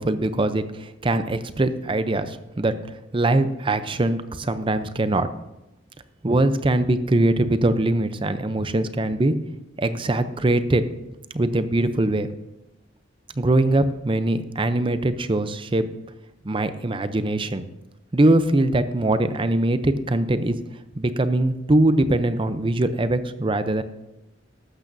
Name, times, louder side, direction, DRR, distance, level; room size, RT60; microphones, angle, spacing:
voice 1, 0.0-2.7 3.1-5.3 6.2-9.3 9.8-10.8 11.3-12.3 13.4-15.9 16.4-17.7 18.1-20.6 21.0-23.8, right 2 dB, 25° right, 11 dB, 0.6 m, -22 dB
14.5 x 12.0 x 2.7 m, 0.94 s
head